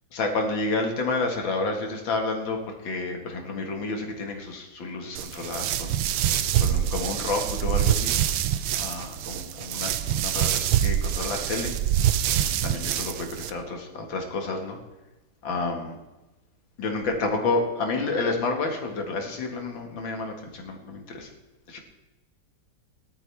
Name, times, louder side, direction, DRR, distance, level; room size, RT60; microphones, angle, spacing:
voice 1, 0.1-6.0 6.6-8.2 8.8-11.7 12.4-14.8 15.4-16.0 16.8-21.3 21.7-21.8, left 3 dB, 80° left, 2 dB, 2.6 m, -30 dB
sound 1, 5.2-13.5, right 11 dB, 85° right, 1.4 m, -25 dB
18.5 x 12.0 x 3.5 m, 1.1 s
omnidirectional pair, 2.1 m